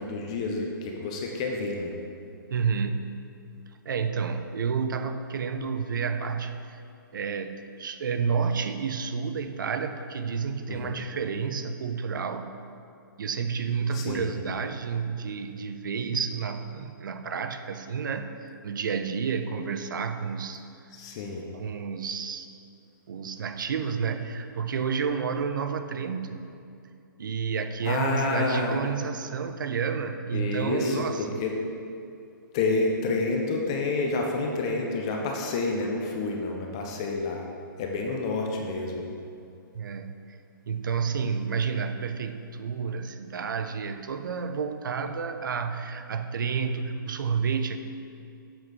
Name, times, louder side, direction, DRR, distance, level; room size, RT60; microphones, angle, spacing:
voice 1, 0.0-1.9 10.7-10.9 13.9-14.3 20.9-21.4 27.8-28.8 30.3-31.5 32.5-37.4 37.8-39.1, left 3 dB, 15° left, 1 dB, 0.3 m, -29 dB
voice 2, 2.5-3.1 3.8-6.8 7.1-12.5 13.2-20.6 21.5-22.5 23.1-26.5 27.2-31.4 39.7-40.4 40.7-47.8, right 6 dB, 65° right, 8 dB, 0.5 m, -30 dB
7.7 x 4.2 x 4.6 m, 2.5 s
hypercardioid pair, 175°, 12 cm